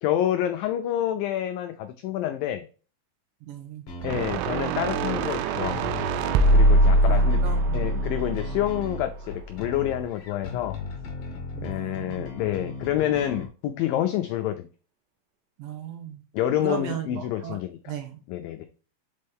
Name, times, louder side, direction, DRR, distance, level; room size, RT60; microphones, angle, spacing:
voice 1, 0.0-2.7 4.0-5.8 6.5-7.4 7.7-10.8 11.6-14.7 16.3-17.8 18.3-18.7, left 12 dB, 90° left, 8 dB, 2.0 m, -28 dB
voice 2, 3.4-3.9 7.0-8.0 8.5-8.7 11.5-12.3 15.6-16.2 16.6-17.6 17.9-18.2, right 8 dB, 65° right, 3 dB, 2.8 m, -36 dB
sound 1, 3.9-13.5, left 3 dB, 55° left, 1.9 m, -37 dB
sound 2, 4.0-9.3, right 1 dB, 90° right, 2.7 m, -22 dB
6.2 x 5.4 x 3.5 m, 0.36 s
omnidirectional pair, 4.7 m